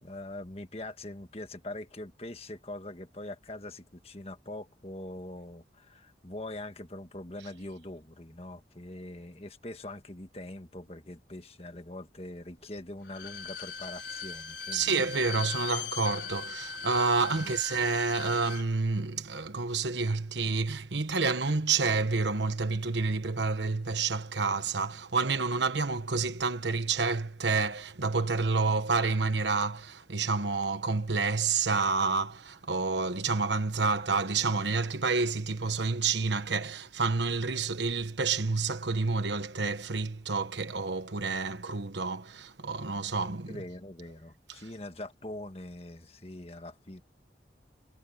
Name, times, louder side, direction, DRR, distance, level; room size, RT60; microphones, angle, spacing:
voice 1, 0.0-14.9 17.2-17.6 43.5-47.0, left 1 dB, 35° left, 1.7 m, -43 dB
Bowed string instrument, 13.0-18.7 19.0-19.1, left 6 dB, 80° left, 5.7 m, -39 dB
voice 2, 14.7-43.6, right 4 dB, 80° right, 1.2 m, -29 dB
head